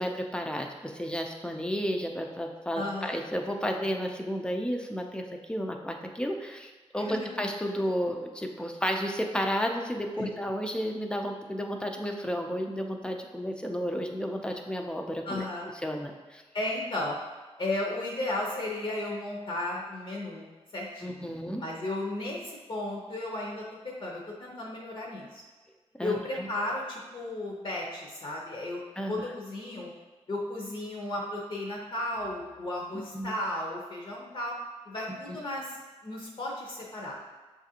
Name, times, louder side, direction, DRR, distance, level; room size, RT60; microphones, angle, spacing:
voice 1, 0.0-15.4 15.8-16.4 21.0-21.6 26.0-26.5 29.0-29.2 32.9-33.3, equal, 10° left, 3 dB, 0.4 m, -32 dB
voice 2, 2.7-3.2 6.9-7.3 10.2-10.4 15.3-15.7 16.5-17.2 17.6-25.4 26.0-28.8 29.1-29.9 30.3-34.5 34.9-35.8 36.0-37.1, left 1 dB, 50° left, -2 dB, 0.6 m, -34 dB
6.7 x 2.5 x 2.7 m, 1.2 s
wide cardioid pair, 145°, 11 cm